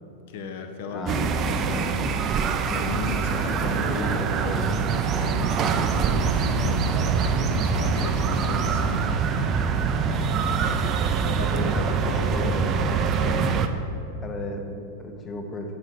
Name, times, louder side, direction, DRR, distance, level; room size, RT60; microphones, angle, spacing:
voice 1, 0.3-1.2 1.7-1.9 2.7-4.7 4.9-9.1 10.0-10.3 11.4-12.6 14.2-14.3, left 3 dB, 50° left, 6 dB, 0.7 m, -35 dB
voice 2, 0.9-2.2 2.6-4.8 11.5-12.9 13.2-15.8, left 2 dB, 20° left, 3 dB, 0.8 m, -35 dB
sound 1, 1.1-13.7, right 5 dB, 30° right, 0.4 m, -24 dB
sound 2, 5.3-9.6, right 1 dB, 5° right, 1.4 m, -40 dB
8.7 x 4.8 x 4.0 m, 2.8 s
figure-of-eight pair, 90°, 0 cm